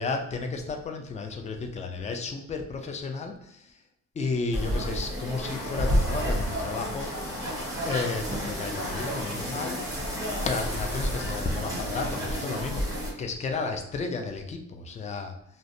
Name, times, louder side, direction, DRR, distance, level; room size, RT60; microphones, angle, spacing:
voice 1, 0.0-3.7 4.2-7.1 7.9-9.8 10.5-12.9 13.2-15.3, left 4 dB, 25° left, 4 dB, 0.4 m, -32 dB
sound 1, 4.5-13.1, equal, 10° right, 1.0 m, -30 dB
sound 2, 5.4-11.2, left 3 dB, 90° left, 0.6 m, -41 dB
2.5 x 2.1 x 2.5 m, 0.82 s
cardioid pair, 90°, 30 cm